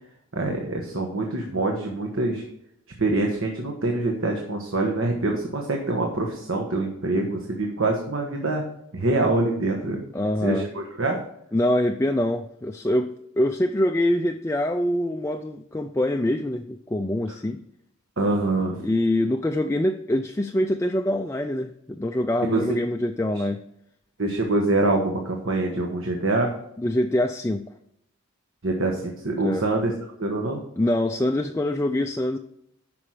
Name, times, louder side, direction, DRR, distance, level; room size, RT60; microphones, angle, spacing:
voice 1, 0.3-2.4 3.0-8.6 8.9-10.0 10.4-11.2 18.2-18.8 22.4-22.8 24.2-26.5 28.6-29.9 30.2-30.6, right 2 dB, 65° right, 1 dB, 1.4 m, -25 dB
voice 2, 10.1-10.7 11.5-17.6 18.8-23.6 26.8-27.7 29.4-29.7 30.8-32.4, left 1 dB, 15° left, 5 dB, 0.3 m, -24 dB
9.9 x 6.1 x 4.9 m, 0.75 s
head